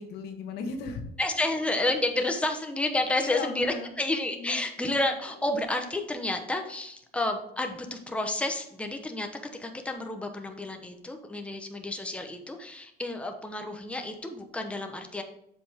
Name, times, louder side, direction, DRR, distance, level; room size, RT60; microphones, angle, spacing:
voice 1, 0.0-1.0 3.1-3.9 4.4-4.6, left 4 dB, 80° left, 5 dB, 1.3 m, -36 dB
voice 2, 1.2-9.3 9.6-15.2, left 2 dB, 5° left, 4 dB, 0.9 m, -30 dB
7.6 x 5.5 x 3.5 m, 0.77 s
cardioid pair, 110°, 17 cm